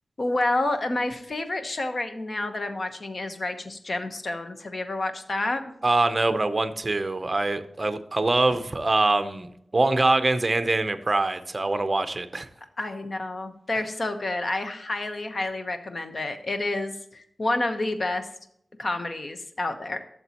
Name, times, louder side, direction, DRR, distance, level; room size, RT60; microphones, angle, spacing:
voice 1, 0.2-5.6 12.8-18.3 18.8-20.0, left 2 dB, 45° left, 7 dB, 1.0 m, -29 dB
voice 2, 5.8-12.5, right 2 dB, 35° right, 10 dB, 0.7 m, -24 dB
12.5 x 7.0 x 2.9 m, 0.73 s
wide cardioid pair, 110°, 0 cm